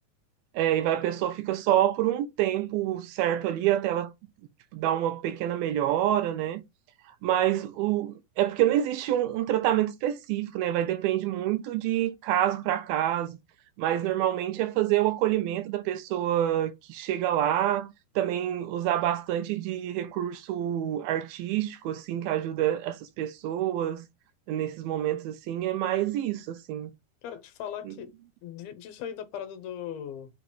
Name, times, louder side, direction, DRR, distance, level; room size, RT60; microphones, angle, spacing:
voice 1, 0.5-4.1 4.7-6.6 7.2-13.4 13.8-24.1 24.5-26.9 27.8-28.0, right 12 dB, 80° right, 2.5 m, -27 dB
voice 2, 27.2-28.1 28.4-30.3, left 9 dB, 75° left, 2.6 m, -38 dB
7.9 x 3.0 x 5.3 m
omnidirectional pair, 4.5 m